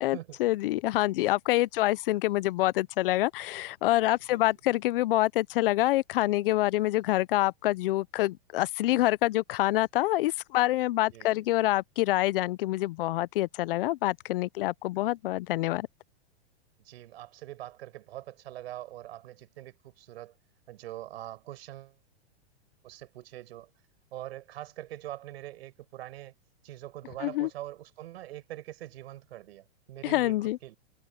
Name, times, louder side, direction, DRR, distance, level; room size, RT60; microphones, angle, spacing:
voice 1, 0.0-15.9 27.2-27.5 30.0-30.6, left 17 dB, 55° left, 0.5 m, -26 dB
voice 2, 11.1-11.5 16.8-20.3 20.7-22.0 22.8-23.7 24.1-26.3 26.6-30.8, right 14 dB, 65° right, 6.2 m, -43 dB
supercardioid pair, 150°, 34 cm